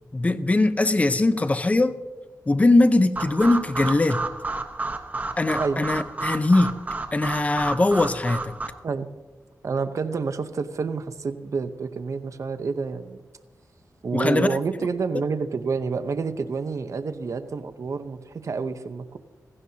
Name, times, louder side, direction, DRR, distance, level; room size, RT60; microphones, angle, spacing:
voice 1, 0.1-1.9 2.5-4.2 5.4-6.7 7.1-8.5 14.1-14.6, left 2 dB, 25° left, 0.6 m, -21 dB
sound 1, 3.2-8.7, right 3 dB, 30° right, 1.1 m, -31 dB
voice 2, 9.6-13.2 14.0-19.2, right 5 dB, 60° right, 0.7 m, -28 dB
16.5 x 15.5 x 2.8 m
wide cardioid pair, 115°, 6 cm